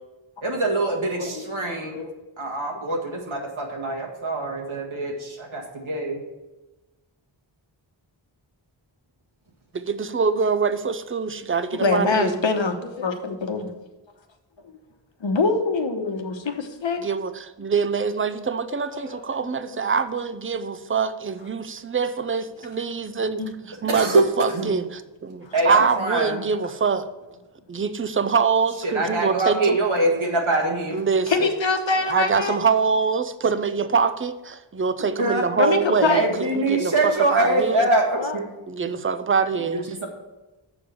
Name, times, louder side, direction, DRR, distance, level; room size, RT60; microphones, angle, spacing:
voice 1, 0.4-2.0 2.4-6.2 23.9-24.7 25.5-26.4 28.8-31.0 35.2-35.4 36.1-38.5 39.7-40.1, right 2 dB, 85° right, 1.8 m, -24 dB
voice 2, 1.1-1.4 1.9-2.1 11.8-13.7 15.2-17.0 18.7-19.8 23.4-23.5 25.4-25.5 31.3-32.6 35.6-36.3 38.2-38.4, left 4 dB, 70° left, 1.1 m, -24 dB
voice 3, 9.7-12.4 17.0-23.4 23.8-27.1 27.7-29.8 30.9-31.5 32.1-37.9 38.7-39.8, right 5 dB, 25° right, 0.6 m, -24 dB
7.0 x 4.9 x 7.1 m
wide cardioid pair, 45°, 46 cm